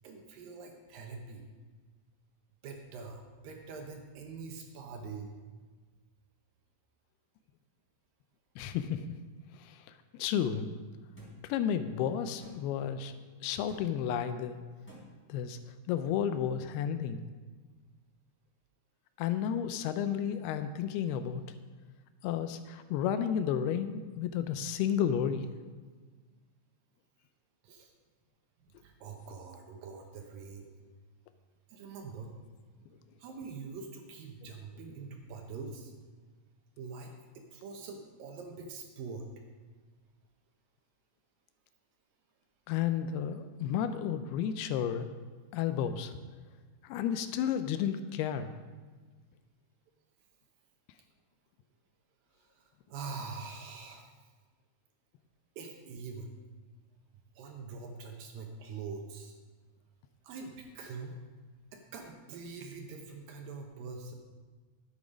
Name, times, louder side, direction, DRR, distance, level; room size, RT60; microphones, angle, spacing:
voice 1, 0.0-1.5 2.6-5.3 27.6-27.9 28.8-30.7 31.7-32.4 33.2-35.9 36.8-39.3 52.3-54.1 55.6-56.3 57.4-59.4 60.2-61.1 61.7-64.1, right 4 dB, 70° right, 3 dB, 2.4 m, -44 dB
voice 2, 8.6-9.0 9.6-9.8 10.1-10.7 11.4-13.1 13.4-14.6 15.3-15.6 15.9-17.2 19.2-21.4 22.2-25.5 42.7-45.1 45.5-46.2 46.8-48.6, left 9 dB, 85° left, 10 dB, 2.5 m, -32 dB
sound 1, 11.2-11.3 12.4-12.6 13.7-13.8 14.9-15.0, left 1 dB, 5° left, 3.3 m, -50 dB
11.0 x 8.3 x 5.1 m, 1.4 s
omnidirectional pair, 4.7 m